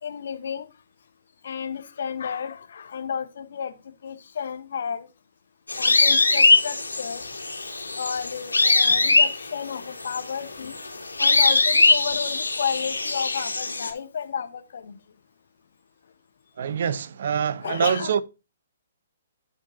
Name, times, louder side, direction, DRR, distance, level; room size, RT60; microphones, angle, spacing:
voice 1, 0.0-0.7 1.4-3.8 4.0-5.1 5.8-7.2 8.0-10.8 11.2-15.0 17.6-18.1, left 7 dB, 55° left, 1.2 m, -32 dB
sound 1, 5.7-13.9, left 3 dB, 75° left, 3.1 m, -21 dB
voice 2, 16.6-18.2, right 7 dB, 50° right, 0.6 m, -25 dB
13.5 x 5.2 x 2.8 m
figure-of-eight pair, 125°, 0 cm